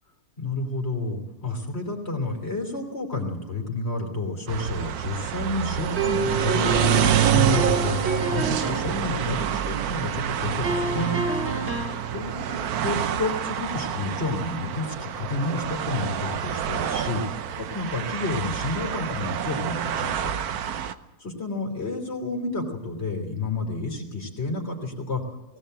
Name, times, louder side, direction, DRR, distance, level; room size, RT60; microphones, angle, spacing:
voice 1, 0.4-11.1 12.1-20.3 21.2-25.2, left 2 dB, 45° left, 3 dB, 3.3 m, -30 dB
sound 1, 4.5-20.9, right 9 dB, 85° right, 1.4 m, -27 dB
sound 2, 6.0-9.0 10.6-12.1, right 2 dB, 45° right, 2.3 m, -29 dB
19.0 x 18.0 x 8.0 m, 1.0 s
omnidirectional pair, 1.6 m